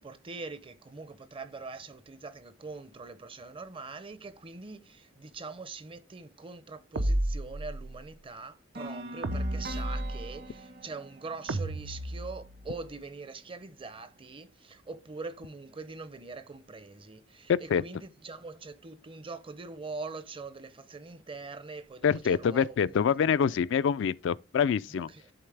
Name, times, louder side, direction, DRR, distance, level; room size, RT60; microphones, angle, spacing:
voice 1, 0.0-23.0 24.9-25.3, right 3 dB, 25° right, 0.6 m, -43 dB
sound 1, 7.0-8.0 9.2-10.5 11.5-12.7, right 1 dB, 90° right, 0.8 m, -32 dB
sound 2, 8.7-12.7, right 2 dB, 55° right, 1.2 m, -43 dB
voice 2, 17.5-17.8 22.0-25.1, left 7 dB, 65° left, 0.3 m, -26 dB
11.0 x 4.0 x 3.3 m
head